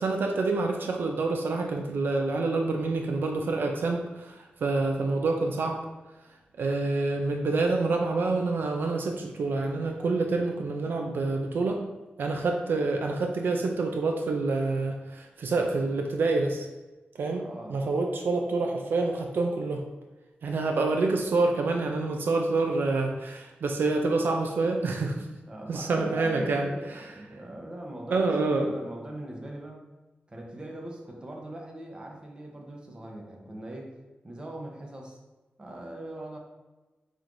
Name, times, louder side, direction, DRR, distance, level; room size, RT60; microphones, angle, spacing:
voice 1, 0.0-5.8 6.6-11.8 12.2-16.7 17.2-17.4 17.7-19.8 20.4-25.3 25.7-27.1 28.1-28.8, right 3 dB, 75° right, 2 dB, 0.4 m, -27 dB
voice 2, 17.4-17.9 25.5-29.8 30.3-33.9 34.2-35.2 35.6-36.4, right 1 dB, 25° right, 0 dB, 0.8 m, -41 dB
5.6 x 3.1 x 2.5 m, 1.2 s
wide cardioid pair, 100°, 4 cm